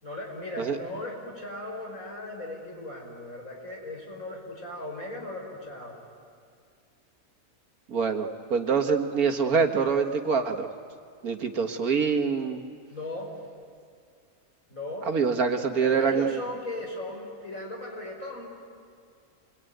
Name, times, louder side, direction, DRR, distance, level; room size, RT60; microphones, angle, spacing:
voice 1, 0.0-5.9 12.9-13.3 14.7-15.1 15.5-18.5, left 2 dB, 70° left, 0 dB, 5.9 m, -37 dB
voice 2, 7.9-10.7 11.2-12.6 15.1-16.4, right 5 dB, 85° right, 4 dB, 2.1 m, -25 dB
27.5 x 22.0 x 9.3 m, 2.3 s
omnidirectional pair, 1.5 m